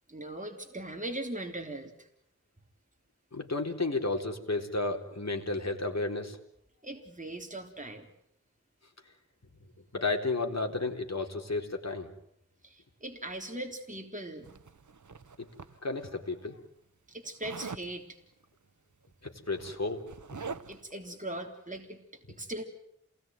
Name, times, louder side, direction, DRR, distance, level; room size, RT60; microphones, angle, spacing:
voice 1, 0.1-2.1 6.8-8.1 12.6-14.5 17.1-18.2 20.7-22.6, right 1 dB, 25° right, 2 dB, 3.7 m, -40 dB
voice 2, 3.3-6.4 9.1-9.2 9.9-12.1 15.4-15.5 15.8-16.6 19.2-20.0 20.3-20.4, left 3 dB, 60° left, 3 dB, 4.0 m, -32 dB
Zipper (clothing), 14.4-16.1 17.4-17.9 19.0-19.1 19.4-20.9, right 5 dB, 80° right, 1.2 m, -44 dB
28.5 x 19.5 x 9.4 m, 0.74 s
wide cardioid pair, 65°, 30 cm